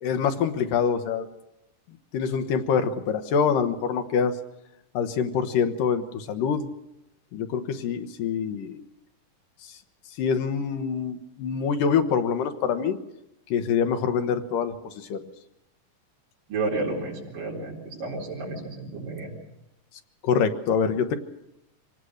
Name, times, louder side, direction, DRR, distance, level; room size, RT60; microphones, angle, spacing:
voice 1, 0.0-1.3 2.1-4.4 4.9-6.7 7.3-8.8 9.6-9.7 10.2-13.0 13.5-15.3 20.2-21.2, left 6 dB, 80° left, 7 dB, 2.8 m, -25 dB
voice 2, 16.5-19.3, right 3 dB, 80° right, -4 dB, 5.8 m, -31 dB
25.0 x 18.5 x 6.5 m, 0.88 s
omnidirectional pair, 3.8 m